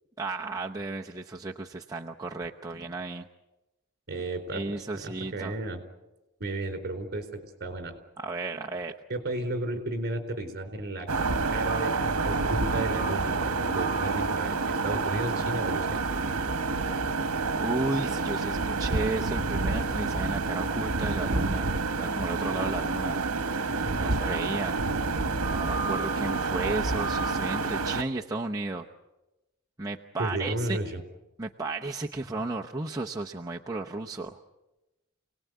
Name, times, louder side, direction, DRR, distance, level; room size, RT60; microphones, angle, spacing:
voice 1, 0.2-3.2 4.5-5.5 8.2-8.9 14.9-15.1 17.6-21.7 22.0-23.2 24.0-24.8 25.5-28.9 29.8-30.8 31.4-34.4, right 2 dB, 15° right, 0 dB, 0.8 m, -34 dB
voice 2, 4.1-4.8 5.0-5.8 6.4-8.0 9.1-11.1 11.5-15.9 23.8-24.2 30.2-31.0, right 2 dB, 45° right, 7 dB, 4.2 m, -33 dB
sound 1, 11.1-28.0, right 3 dB, 70° right, 1.3 m, -28 dB
28.5 x 19.0 x 9.3 m, 1.0 s
head